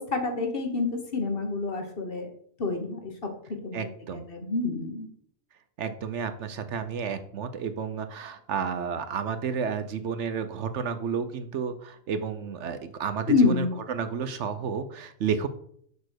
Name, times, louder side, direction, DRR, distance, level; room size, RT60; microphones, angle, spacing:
voice 1, 0.0-2.3 2.6-3.1 3.6-5.1 13.3-13.7, left 4 dB, 45° left, 5 dB, 1.4 m, -27 dB
voice 2, 3.7-4.2 5.8-15.5, right 6 dB, 65° right, 10 dB, 1.0 m, -31 dB
7.2 x 4.2 x 6.3 m, 0.63 s
omnidirectional pair, 1.4 m